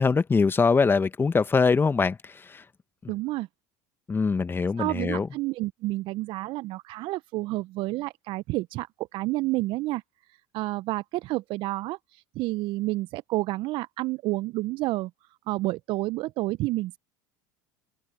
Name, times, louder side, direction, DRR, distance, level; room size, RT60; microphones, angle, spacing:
voice 1, 0.0-2.6 3.0-3.1 4.1-5.3, left 4 dB, 20° left, 1.4 m, -23 dB
voice 2, 3.1-3.5 4.8-10.0 10.3-15.1 15.5-17.0, right 19 dB, 55° right, 0.9 m, -30 dB
hypercardioid pair, 70°, 10 cm